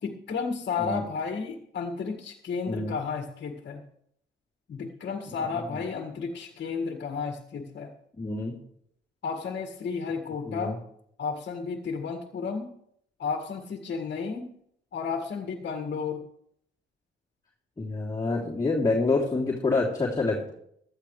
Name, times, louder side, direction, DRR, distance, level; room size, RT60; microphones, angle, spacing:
voice 1, 0.0-3.8 4.7-7.9 9.2-10.8 11.2-12.7 13.2-14.5 14.9-16.2, left 5 dB, 55° left, 3 dB, 2.0 m, -32 dB
voice 2, 8.2-8.5 10.4-10.8 17.8-20.5, left 3 dB, 20° left, -5 dB, 3.2 m, -27 dB
15.5 x 12.5 x 3.3 m, 0.70 s
cardioid pair, 90°, 20 cm